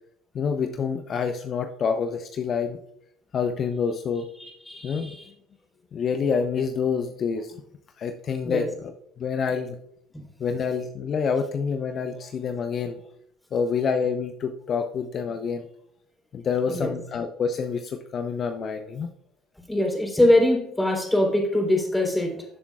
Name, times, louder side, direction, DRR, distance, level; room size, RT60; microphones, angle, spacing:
voice 1, 0.3-2.8 3.3-4.3 4.8-5.1 5.9-7.5 8.0-8.9 9.2-9.8 10.4-13.0 13.5-15.7 16.3-19.1, left 6 dB, 45° left, 7 dB, 0.7 m, -27 dB
voice 2, 4.4-5.3 8.4-8.7 10.1-10.2 16.7-16.9 19.6-22.4, left 1 dB, 5° left, 1 dB, 3.5 m, -23 dB
13.5 x 7.1 x 2.4 m, 0.73 s
hypercardioid pair, 70°, 0 cm